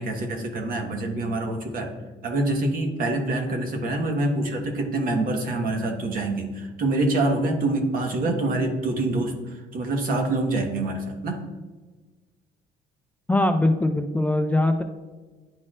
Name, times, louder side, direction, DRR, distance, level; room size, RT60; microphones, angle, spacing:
voice 1, 0.0-1.9 2.2-11.4, right 2 dB, 55° right, 3 dB, 1.3 m, -26 dB
voice 2, 13.3-14.8, left 1 dB, 10° left, 6 dB, 0.3 m, -21 dB
11.0 x 4.3 x 2.4 m, 1.3 s
cardioid pair, 110°, 17 cm